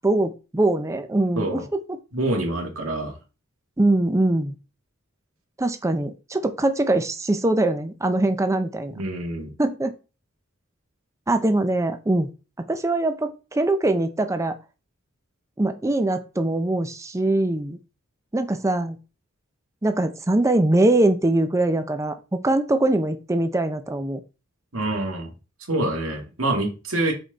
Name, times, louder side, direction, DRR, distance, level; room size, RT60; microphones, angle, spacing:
voice 1, 0.0-2.0 3.8-4.5 5.6-8.9 9.6-9.9 11.3-12.3 12.6-14.6 15.6-17.8 18.3-19.0 19.8-24.2, right 2 dB, 15° right, 8 dB, 0.5 m, -22 dB
voice 2, 2.1-3.1 8.9-9.5 24.7-25.3 25.7-27.1, right 1 dB, 90° right, 2 dB, 2.1 m, -26 dB
6.3 x 4.7 x 3.9 m, 0.32 s
head